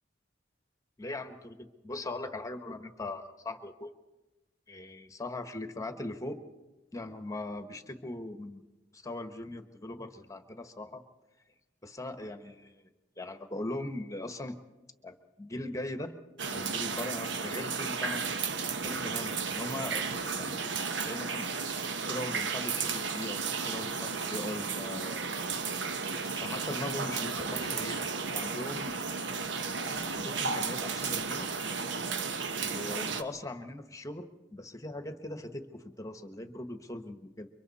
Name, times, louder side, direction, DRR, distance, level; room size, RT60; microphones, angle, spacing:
voice 1, 1.0-3.9 4.7-6.4 6.9-8.6 8.9-11.0 11.8-12.8 13.2-14.6 15.0-16.1 16.5-18.3 18.8-21.5 22.1-25.3 25.9-28.1 28.3-29.0 29.9-31.5 32.5-37.5, left 2 dB, 20° left, 8 dB, 1.3 m, -40 dB
sound 1, 16.4-33.2, right 5 dB, 70° right, 1.1 m, -33 dB
29.5 x 24.0 x 4.2 m, 1.1 s
head